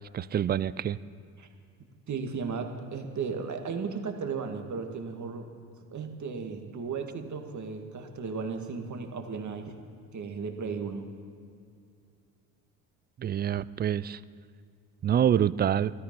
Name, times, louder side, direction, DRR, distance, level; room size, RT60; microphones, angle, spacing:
voice 1, 0.1-1.0 13.2-14.2 15.0-15.9, right 9 dB, 25° right, 19 dB, 0.3 m, -26 dB
voice 2, 2.1-5.5 5.8-9.7 10.1-11.1, right 5 dB, 40° right, 5 dB, 2.0 m, -35 dB
13.5 x 13.0 x 5.4 m, 2.4 s
supercardioid pair, 70°, 44 cm